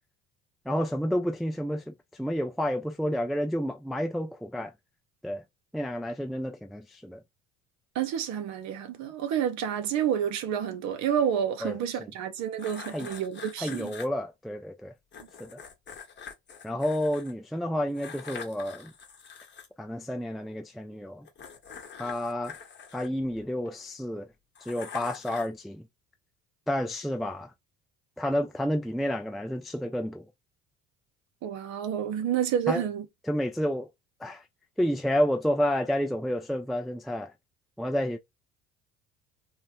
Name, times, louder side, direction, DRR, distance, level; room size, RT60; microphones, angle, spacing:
voice 1, 0.7-4.7 5.2-5.4 5.7-7.2 11.6-11.8 12.9-13.1 13.6-14.9 15.4-15.5 16.6-18.9 19.8-21.3 22.0-22.5 22.9-24.3 24.7-25.8 26.7-27.5 28.2-30.2 32.7-32.8 33.3-33.9 34.2-34.4 34.8-37.3 37.8-38.2, equal, ahead, 0.4 m, -30 dB
voice 2, 7.9-13.9 31.4-33.1, right 9 dB, 60° right, 0.7 m, -29 dB
sound 1, 12.6-14.1 15.1-17.3 17.9-19.7 21.2-23.7 24.6-25.6, left 6 dB, 35° left, 0.9 m, -45 dB
2.1 x 2.1 x 2.9 m
hypercardioid pair, 60°, 32 cm